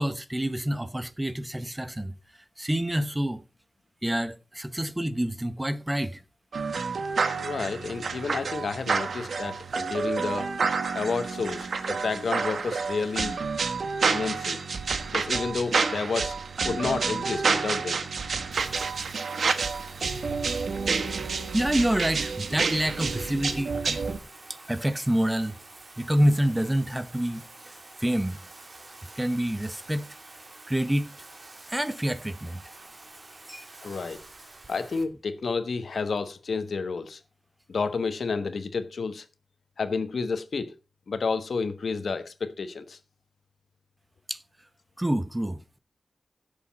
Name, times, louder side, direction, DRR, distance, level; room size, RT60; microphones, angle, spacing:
voice 1, 0.0-2.2 2.6-3.4 4.0-6.2 21.0-24.2 24.7-25.6 26.0-27.7 28.0-28.4 29.2-30.1 30.7-31.1 31.7-32.6 33.5-33.6 44.3-44.4 45.0-45.8, right 1 dB, 10° right, 0.9 m, -27 dB
sound 1, 6.5-24.2, right 4 dB, 80° right, 1.3 m, -29 dB
voice 2, 7.4-10.5 10.9-13.4 14.1-14.6 15.1-16.4 16.6-18.0 33.8-34.2 34.7-37.2 37.7-39.2 39.8-40.7 41.1-43.0, left 4 dB, 70° left, 1.2 m, -30 dB
Bathtub (filling or washing), 18.5-35.0, right 2 dB, 35° right, 2.5 m, -48 dB
16.0 x 6.9 x 4.1 m
wide cardioid pair, 115°, 0 cm